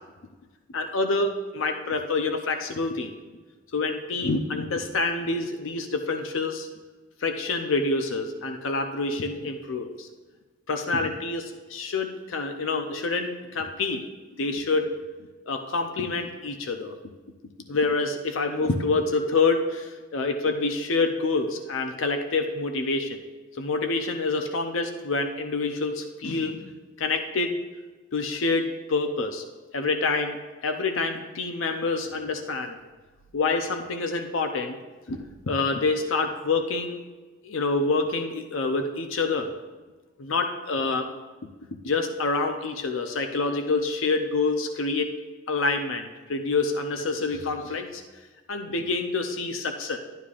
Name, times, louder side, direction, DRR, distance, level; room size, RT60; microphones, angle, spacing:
voice 1, 0.7-3.1 3.7-6.7 7.2-10.1 10.7-14.1 14.4-14.9 15.5-16.9 17.7-23.2 23.6-26.7 27.0-27.6 28.1-29.4 29.7-30.4 30.6-32.8 33.3-34.8 35.1-37.0 37.4-39.5 40.2-41.1 41.8-45.2 45.5-48.0 48.5-50.0, left 3 dB, 85° left, 6 dB, 0.6 m, -27 dB
11.5 x 9.8 x 2.5 m, 1.3 s
head